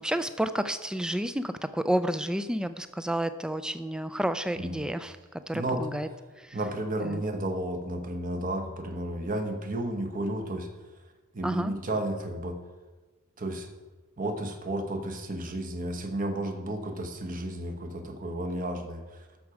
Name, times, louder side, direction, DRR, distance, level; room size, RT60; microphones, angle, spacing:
voice 1, 0.0-5.2 5.5-6.1 6.4-6.6 7.0-7.2 11.4-11.7, right 1 dB, 5° right, 11 dB, 0.3 m, -30 dB
voice 2, 5.5-5.8 6.5-10.7 11.3-12.6 13.4-13.7 14.2-19.3, right 1 dB, 35° right, 5 dB, 1.0 m, -32 dB
13.5 x 6.1 x 4.8 m, 1.3 s
head